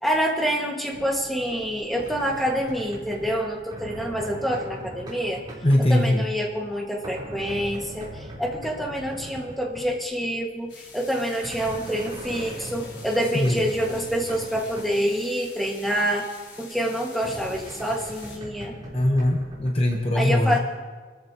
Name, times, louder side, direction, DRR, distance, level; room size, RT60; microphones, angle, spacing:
voice 1, 0.0-5.4 5.8-18.8 20.1-20.6, equal, ahead, -1 dB, 1.8 m, -27 dB
sound 1, 0.9-10.0 10.7-15.1 15.4-15.5 15.7-15.8 16.5-20.0, right 1 dB, 25° right, 4.0 m, -40 dB
voice 2, 5.6-6.3 13.3-13.6 18.9-20.6, left 1 dB, 30° left, 2 dB, 1.0 m, -21 dB
sound 2, 10.7-18.4, left 4 dB, 85° left, 3.9 m, -46 dB
25.0 x 13.5 x 3.0 m, 1.4 s
head